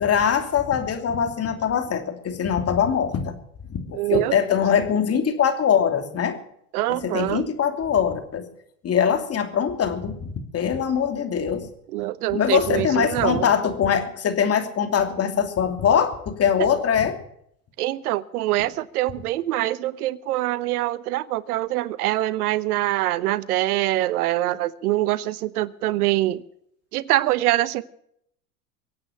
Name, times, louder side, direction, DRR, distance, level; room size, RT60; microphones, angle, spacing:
voice 1, 0.0-3.3 3.9-6.4 7.0-8.5 8.8-11.7 12.3-17.2, left 7 dB, 35° left, 7 dB, 2.8 m, -22 dB
voice 2, 3.9-4.3 6.7-7.5 11.9-13.5 16.6-16.7 17.8-26.4 26.9-27.8, right 16 dB, 80° right, 18 dB, 1.0 m, -24 dB
24.0 x 8.7 x 5.7 m, 0.71 s
hypercardioid pair, 105°, 44 cm